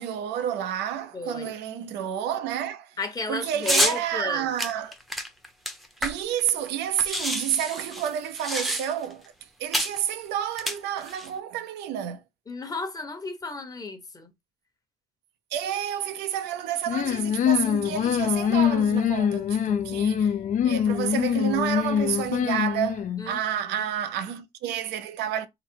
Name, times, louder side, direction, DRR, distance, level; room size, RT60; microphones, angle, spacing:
voice 1, 0.0-2.9 3.3-4.9 6.0-9.2 9.6-12.2 15.5-20.3 20.6-25.5, right 10 dB, 85° right, 0.7 m, -30 dB
voice 2, 1.1-1.5 3.0-4.5 12.5-14.3 23.2-23.4 23.7-23.9, left 3 dB, 20° left, 1.0 m, -34 dB
sound 1, 3.6-4.0 4.6-6.4 6.7-6.8 7.0-9.1 9.7-10.0 10.5-11.3, equal, ahead, 0.8 m, -28 dB
sound 2, 16.9-23.3, left 8 dB, 50° left, 0.5 m, -24 dB
3.9 x 2.1 x 4.5 m
cardioid pair, 110°, 17 cm